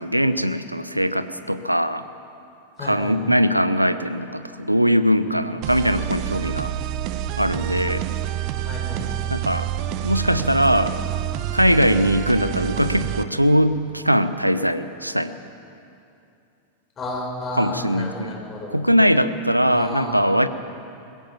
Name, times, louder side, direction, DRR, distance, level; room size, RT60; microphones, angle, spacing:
voice 1, 0.0-2.0 2.8-6.7 7.4-8.1 9.3-9.7 10.0-10.9 11.5-15.3 17.6-18.4 18.7-20.5, equal, 90° right, 12 dB, 0.9 m, -21 dB
voice 2, 2.8-3.3 5.3-5.4 8.7-9.0 17.0-18.7 19.7-20.2, left 1 dB, 25° left, 0 dB, 6.1 m, -32 dB
sound 1, 5.6-13.2, right 12 dB, 40° right, 1.0 m, -27 dB
22.0 x 20.5 x 7.3 m, 2.6 s
figure-of-eight pair, 90°, 0 cm